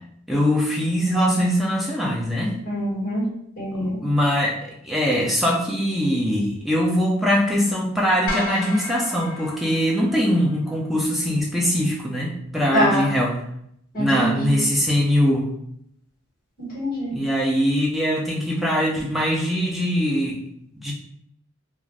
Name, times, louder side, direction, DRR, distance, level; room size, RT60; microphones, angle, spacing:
voice 1, 0.3-2.6 3.8-13.4 14.0-15.5 17.1-20.4 20.7-20.9, equal, ahead, -3 dB, 0.4 m, -22 dB
voice 2, 2.6-3.2 3.6-4.0 12.7-13.1 13.9-14.6 16.6-17.2, equal, 40° left, -7 dB, 1.2 m, -24 dB
sound 1, 8.3-10.6, left 2 dB, 80° left, 0.8 m, -33 dB
2.4 x 2.2 x 3.2 m, 0.73 s
head